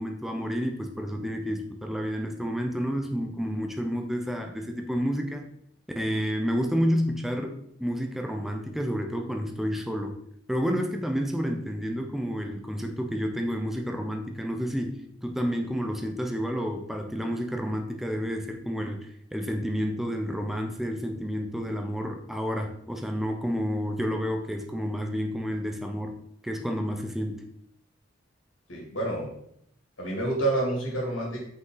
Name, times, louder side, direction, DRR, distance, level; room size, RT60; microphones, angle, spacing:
voice 1, 0.0-5.4 6.0-10.2 10.5-26.2 26.4-27.5, equal, ahead, 3 dB, 0.5 m, -30 dB
voice 2, 28.7-29.3 30.0-31.4, right 2 dB, 85° left, -3 dB, 2.3 m, -28 dB
5.8 x 5.5 x 3.8 m, 0.71 s
head